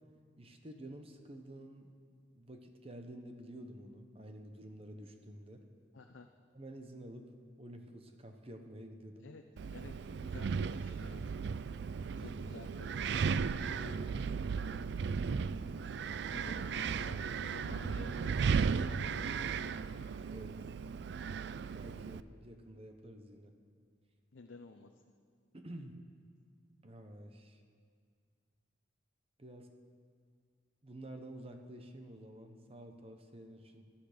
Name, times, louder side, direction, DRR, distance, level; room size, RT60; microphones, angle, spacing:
voice 1, 0.4-1.9 2.4-5.7 6.5-7.3 7.6-9.3 10.1-11.2 12.3-12.6 13.5-15.3 16.2-16.5 20.3-20.6 21.7-23.5 25.5-26.0 26.8-27.6 29.4-29.7 30.8-33.9, right 1 dB, 30° right, 5 dB, 0.9 m, -50 dB
voice 2, 5.9-6.3 9.2-9.4 9.7-9.9 10.2-11.2 12.2-13.2 16.3-19.7 24.3-24.9, left 3 dB, 80° left, 4 dB, 0.7 m, -52 dB
Wind, 9.6-22.2, right 5 dB, 60° right, 0.3 m, -36 dB
16.5 x 11.5 x 5.1 m, 2.1 s
head